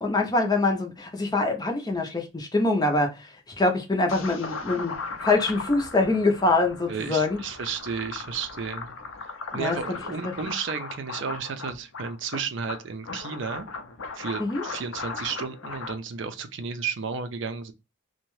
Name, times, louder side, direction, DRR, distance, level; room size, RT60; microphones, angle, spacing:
voice 1, 0.0-3.3 3.6-7.4 9.5-9.8 14.4-14.6, left 2 dB, 20° left, 0.5 m, -24 dB
sound 1, 4.1-15.9, left 4 dB, 80° left, 0.5 m, -37 dB
voice 2, 6.9-8.9 9.5-13.7 14.1-17.7, right 6 dB, 60° right, 0.4 m, -33 dB
2.7 x 2.2 x 3.0 m
head